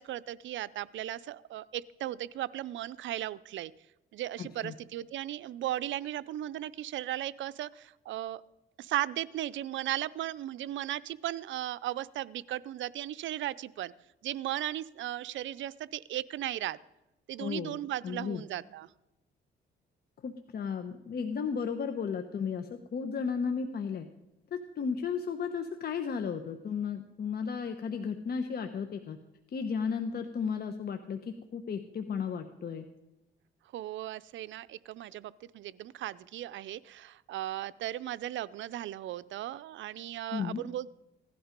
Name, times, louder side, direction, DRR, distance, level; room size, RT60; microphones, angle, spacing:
voice 1, 0.0-3.7 4.1-8.4 8.8-13.9 14.2-16.8 17.3-18.9 33.7-40.9, right 13 dB, 75° right, 17 dB, 0.6 m, -36 dB
voice 2, 4.4-4.7 17.4-17.8 18.0-18.4 20.2-24.1 24.5-29.2 29.5-32.9 40.3-40.6, left 6 dB, 50° left, 7 dB, 1.0 m, -34 dB
16.5 x 12.0 x 5.2 m, 0.98 s
cardioid pair, 90°, 20 cm